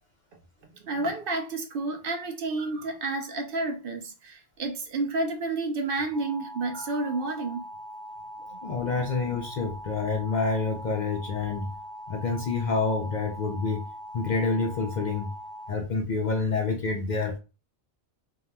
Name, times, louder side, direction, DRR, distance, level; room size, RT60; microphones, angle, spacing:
voice 1, 0.8-7.7 8.5-8.6 8.9-9.1, right 3 dB, 60° right, 0.7 m, -30 dB
sound 1, 6.1-15.7, equal, 85° left, 1.0 m, -42 dB
voice 2, 8.6-11.7 12.1-13.8 14.1-15.3 15.7-17.4, left 4 dB, 60° left, 0.5 m, -28 dB
2.7 x 2.2 x 3.2 m
omnidirectional pair, 1.2 m